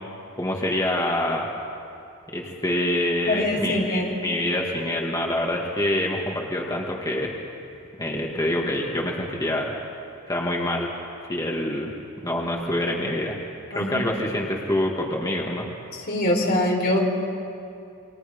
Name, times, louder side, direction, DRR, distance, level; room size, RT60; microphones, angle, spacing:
voice 1, 0.4-1.5 2.3-7.3 8.0-9.7 10.3-10.9 11.3-11.9 12.2-13.4 13.8-15.7, left 1 dB, 15° left, -2 dB, 2.1 m, -26 dB
voice 2, 3.3-4.1 13.7-14.0 16.1-17.0, left 1 dB, 45° left, 0 dB, 4.3 m, -23 dB
29.5 x 24.0 x 5.4 m, 2.6 s
head